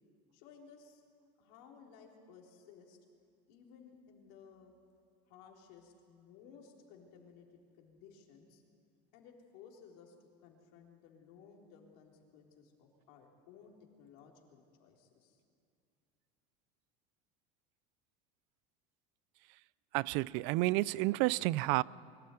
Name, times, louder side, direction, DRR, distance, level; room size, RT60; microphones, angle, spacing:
voice 1, 0.3-1.0 1.4-3.0 3.5-4.7 5.3-8.6 9.1-15.4, left 6 dB, 75° left, 3.9 m, -58 dB
voice 2, 19.9-21.8, right 20 dB, 65° right, 0.5 m, -30 dB
23.0 x 13.5 x 9.2 m
supercardioid pair, 120°, 21 cm